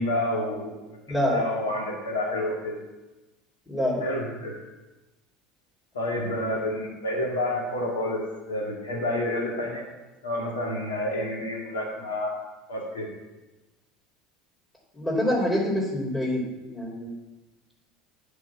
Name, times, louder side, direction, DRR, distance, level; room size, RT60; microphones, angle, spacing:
voice 1, 0.0-0.9 1.3-2.8 4.0-4.6 5.9-9.8 10.2-12.3 12.7-13.1, left 1 dB, 90° left, -1 dB, 1.9 m, -29 dB
voice 2, 1.1-1.4 3.7-4.0 14.9-16.4 16.7-17.1, left 1 dB, 10° left, -7 dB, 3.0 m, -26 dB
9.1 x 4.7 x 7.2 m, 1.1 s
hypercardioid pair, 80°, 0 cm